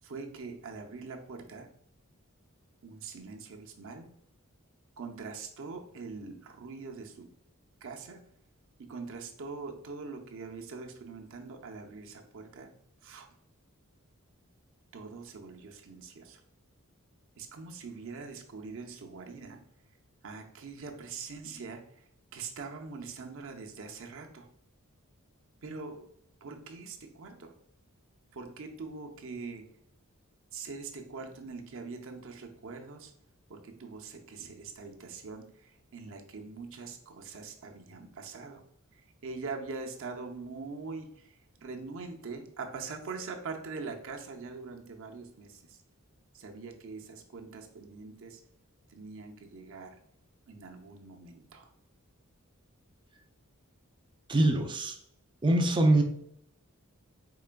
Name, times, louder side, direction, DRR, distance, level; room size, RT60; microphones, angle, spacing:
voice 1, 0.0-1.7 2.8-4.1 5.0-7.3 7.8-8.2 8.8-12.7 13.0-13.3 14.9-16.4 17.4-19.6 20.2-22.0 22.3-24.5 25.6-26.1 26.4-27.5 28.3-29.6 30.5-33.1 33.5-38.6 38.9-45.8 46.3-48.4 48.9-50.0 50.5-51.7, right 4 dB, 65° right, 3 dB, 0.6 m, -43 dB
voice 2, 54.3-55.0 55.4-56.0, right 1 dB, 20° right, 4 dB, 0.4 m, -23 dB
4.7 x 3.3 x 2.2 m, 0.69 s
head